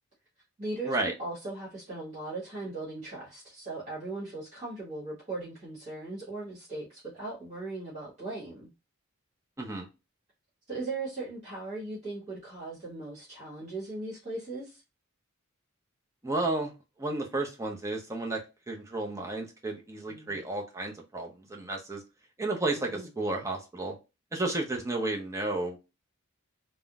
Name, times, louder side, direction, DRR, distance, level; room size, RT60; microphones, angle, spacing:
voice 1, 0.6-8.7 10.7-14.8 20.1-20.4 22.9-23.1, right 2 dB, 35° right, -8 dB, 1.4 m, -38 dB
voice 2, 16.2-16.7 17.0-18.4 18.7-22.0 22.4-23.9 24.3-25.8, right 2 dB, 15° right, 0 dB, 0.6 m, -32 dB
3.6 x 2.1 x 2.4 m, 0.27 s
head